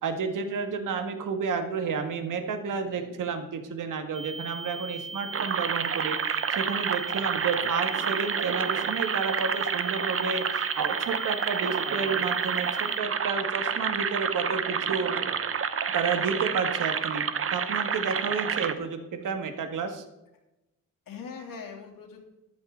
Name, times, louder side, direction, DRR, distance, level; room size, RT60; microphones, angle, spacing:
voice 1, 0.0-6.2 6.5-15.1 15.9-17.3 17.5-20.0, right 5 dB, 70° right, 6 dB, 1.9 m, -31 dB
voice 2, 2.8-3.1 7.1-7.6 15.1-15.3 20.3-20.4 21.1-22.3, left 5 dB, 85° left, 1 dB, 3.1 m, -44 dB
sound 1, 4.1-13.0, right 4 dB, 20° right, 0.6 m, -39 dB
sound 2, 5.3-18.7, right 7 dB, 40° right, 1.0 m, -29 dB
14.0 x 11.5 x 3.9 m, 0.95 s
cardioid pair, 115°, 33 cm